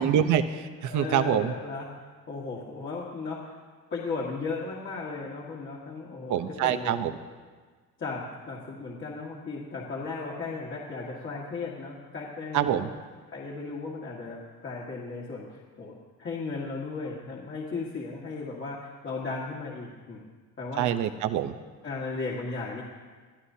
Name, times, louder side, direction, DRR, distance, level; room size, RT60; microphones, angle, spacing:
voice 1, 0.0-1.5 6.3-7.1 12.5-12.9 20.8-21.5, right 10 dB, 60° right, 10 dB, 0.9 m, -25 dB
voice 2, 0.8-1.9 2.3-3.5 3.9-7.1 8.0-12.9 13.3-20.2 20.6-20.9 21.8-22.8, left 4 dB, 35° left, -5 dB, 1.9 m, -36 dB
23.0 x 14.5 x 2.8 m, 1.5 s
cardioid pair, 150°, 33 cm